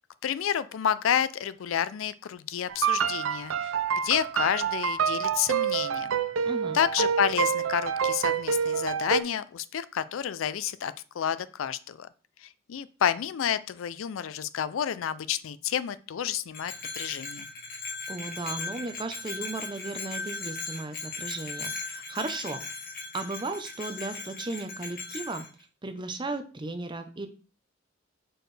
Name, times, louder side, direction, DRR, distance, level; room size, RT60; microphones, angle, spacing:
voice 1, 0.2-3.7 4.0-6.1 6.7-12.1 12.4-17.5, left 9 dB, 80° left, 16 dB, 0.4 m, -30 dB
sound 1, 2.7-9.2, right 7 dB, 80° right, 0.5 m, -27 dB
voice 2, 6.4-6.8 18.1-22.6 23.1-25.4 25.8-27.3, right 2 dB, 25° right, 7 dB, 0.6 m, -35 dB
Bell, 16.5-25.5, left 3 dB, 45° left, 1.6 m, -38 dB
6.5 x 4.4 x 3.2 m, 0.37 s
head